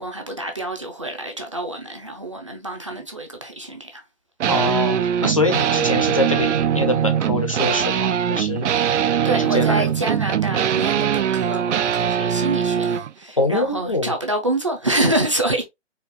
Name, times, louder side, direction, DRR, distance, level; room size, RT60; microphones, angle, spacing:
voice 1, 0.0-4.0 9.2-15.6, right 1 dB, 30° right, 0.4 m, -26 dB
sound 1, 4.4-13.1, right 9 dB, 90° right, 0.6 m, -21 dB
voice 2, 4.5-5.0 5.2-8.7 9.4-9.9 13.4-14.1, left 2 dB, 30° left, 0.4 m, -23 dB
4.3 x 2.3 x 2.5 m
hypercardioid pair, 175°, 34 cm